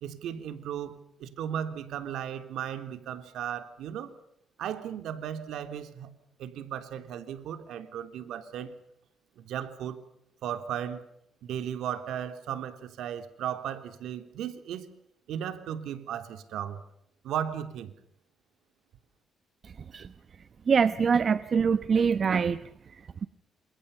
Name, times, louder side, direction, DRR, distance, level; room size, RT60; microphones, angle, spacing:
voice 1, 0.0-4.1 4.6-6.1 6.4-8.7 9.4-10.0 10.4-11.0 11.4-14.9 15.3-16.8 17.2-17.9, right 9 dB, 80° right, 8 dB, 3.4 m, -36 dB
voice 2, 19.6-20.1 20.7-23.3, right 6 dB, 40° right, 12 dB, 1.1 m, -25 dB
29.5 x 27.0 x 5.6 m, 0.77 s
cardioid pair, 125°, 0 cm